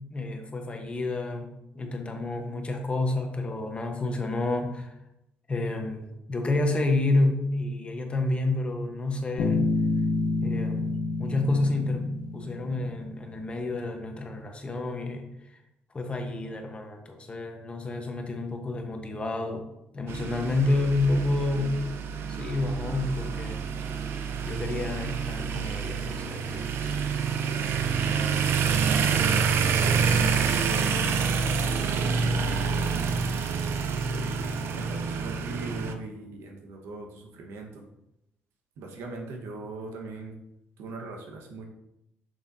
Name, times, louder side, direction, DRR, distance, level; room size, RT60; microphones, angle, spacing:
voice 1, 0.1-4.9 5.5-9.7 10.4-15.3 15.9-19.6 19.9-21.8 22.3-23.6 24.4-26.7, left 2 dB, 25° left, 4 dB, 1.1 m, -29 dB
Bass guitar, 9.4-13.1, left 3 dB, 85° left, 0.8 m, -28 dB
sound 1, 20.1-35.9, right 6 dB, 70° right, 0.6 m, -27 dB
voice 2, 27.8-30.9 31.9-33.3 34.1-37.8 38.8-40.4 40.8-41.7, right 3 dB, 90° right, 2 dB, 1.3 m, -40 dB
6.8 x 6.5 x 2.7 m, 0.85 s
cardioid pair, 105°, 4 cm